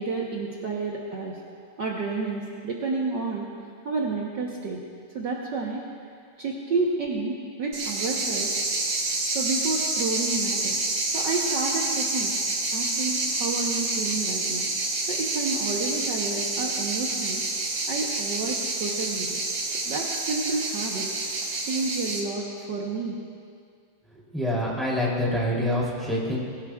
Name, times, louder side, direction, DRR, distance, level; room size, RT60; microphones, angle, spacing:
voice 1, 0.0-1.4 1.8-3.5 3.8-4.8 5.1-5.9 6.4-8.5 9.3-10.8 11.1-12.4 12.7-14.7 15.1-17.4 17.9-19.4 19.8-21.1 21.6-23.2, right 3 dB, 75° right, -2 dB, 1.0 m, -30 dB
sound 1, 7.7-22.2, right 2 dB, 55° right, 2.4 m, -28 dB
voice 2, 24.3-26.4, left 1 dB, ahead, -5 dB, 2.6 m, -26 dB
22.0 x 16.0 x 2.4 m, 2.2 s
omnidirectional pair, 3.6 m